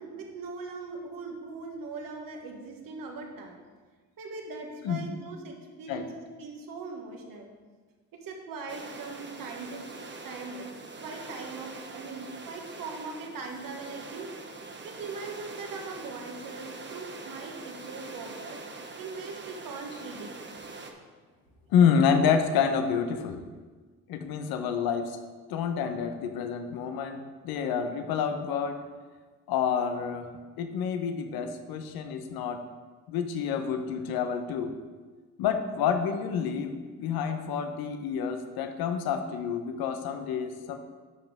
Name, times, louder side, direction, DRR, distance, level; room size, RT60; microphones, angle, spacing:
voice 1, 0.0-3.6 4.2-7.5 8.1-9.9 10.2-14.3 14.8-18.6 19.0-20.3, right 4 dB, 65° right, 2 dB, 1.7 m, -40 dB
sound 1, 8.7-20.9, right 3 dB, 30° right, 1.1 m, -43 dB
voice 2, 21.7-23.4 24.1-25.2 25.5-27.2 27.4-28.8 29.5-30.3 30.6-32.6 33.1-34.7 35.4-40.8, left 7 dB, 75° left, 7 dB, 1.0 m, -28 dB
10.5 x 6.0 x 3.6 m, 1.4 s
supercardioid pair, 65°, 37 cm